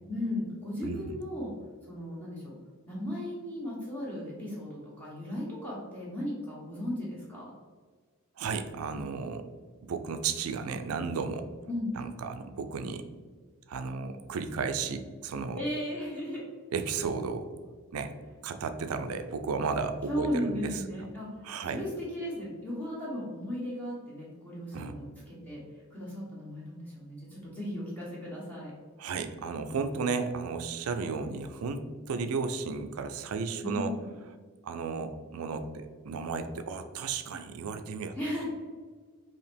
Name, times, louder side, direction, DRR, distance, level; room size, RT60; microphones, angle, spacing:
voice 1, 0.1-1.5 1.9-2.5 2.9-7.5 11.7-11.9 15.5-16.4 20.1-21.3 21.7-25.6 25.9-28.7 33.6-34.0 38.2-38.5, left 1 dB, 10° left, -6 dB, 0.9 m, -36 dB
voice 2, 0.8-1.2 8.4-9.5 9.8-11.5 12.0-13.1 13.7-15.6 16.7-17.5 17.9-18.1 18.4-20.8 21.4-21.8 24.7-25.0 29.0-34.0 34.6-38.1, right 5 dB, 85° right, 9 dB, 0.4 m, -34 dB
4.7 x 2.9 x 3.4 m, 1.5 s
head